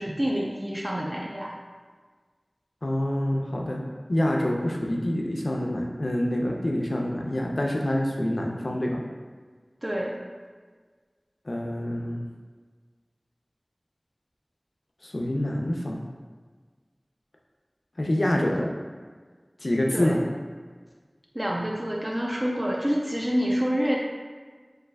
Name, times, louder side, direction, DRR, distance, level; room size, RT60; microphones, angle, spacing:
voice 1, 0.0-1.5 9.8-10.2 19.9-20.2 21.3-24.0, equal, 30° right, -3 dB, 0.4 m, -27 dB
voice 2, 2.8-3.8 4.1-9.0 11.5-12.2 15.0-16.0 18.0-18.7 19.6-20.2, left 1 dB, 70° left, 0 dB, 0.4 m, -26 dB
3.2 x 3.2 x 2.2 m, 1.5 s
wide cardioid pair, 40°, 0 cm